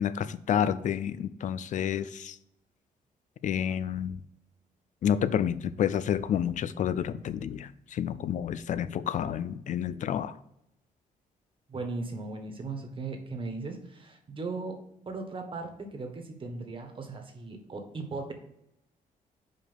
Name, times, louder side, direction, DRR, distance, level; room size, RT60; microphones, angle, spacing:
voice 1, 0.0-2.4 3.4-4.2 5.0-10.3, left 9 dB, 60° left, 15 dB, 0.5 m, -29 dB
voice 2, 11.7-18.3, right 3 dB, 35° right, 4 dB, 1.6 m, -38 dB
5.4 x 4.9 x 6.2 m, 0.81 s
cardioid pair, 105°, 14 cm